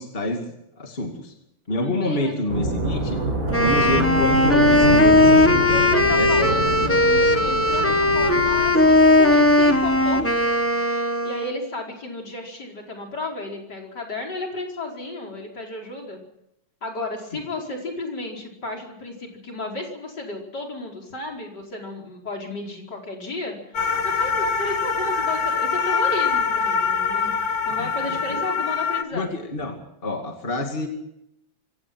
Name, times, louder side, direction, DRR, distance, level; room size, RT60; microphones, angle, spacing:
voice 1, 0.0-1.3 1.7-3.2 3.6-5.6 6.2-6.7 27.7-28.5 29.1-29.8 30.0-30.9, left 1 dB, 30° left, 3 dB, 2.6 m, -27 dB
voice 2, 1.8-2.3 5.7-10.2 11.2-16.2 16.8-23.8 24.0-29.4, left 2 dB, 60° left, 0 dB, 5.4 m, -33 dB
sound 1, 2.5-10.7, right 2 dB, 45° right, 7.6 m, -27 dB
Wind instrument woodwind instrument, 3.5-11.6, left 1 dB, 10° left, 1.1 m, -18 dB
sound 2, 23.7-29.0, left 5 dB, 80° left, 2.2 m, -24 dB
25.0 x 17.5 x 6.1 m, 0.78 s
omnidirectional pair, 2.1 m